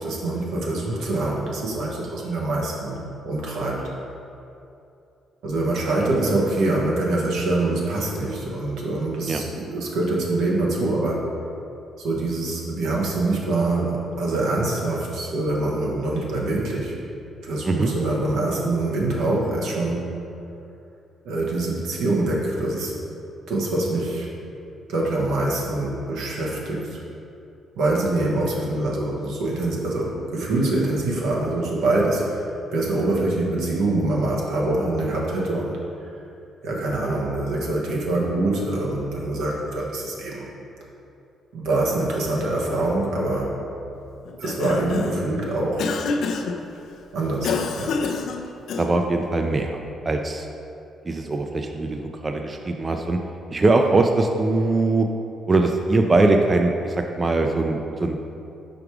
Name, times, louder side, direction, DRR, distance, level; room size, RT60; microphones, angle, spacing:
voice 1, 0.0-3.8 5.4-11.3 12.0-16.9 17.4-20.1 21.2-22.9 23.5-24.3 24.9-27.0 27.7-35.8 36.6-40.5 41.5-43.6 44.4-45.9 47.1-48.0, right 2 dB, 85° right, -3 dB, 1.1 m, -24 dB
Cough, 44.2-45.3 45.8-46.6 47.4-49.1, left 4 dB, 75° left, 0.4 m, -27 dB
voice 2, 48.8-49.7 50.1-50.5 51.1-53.2 53.5-55.1 55.5-58.2, right 2 dB, 30° right, 4 dB, 0.4 m, -21 dB
5.0 x 4.8 x 4.7 m, 2.7 s
cardioid pair, 90°, 0 cm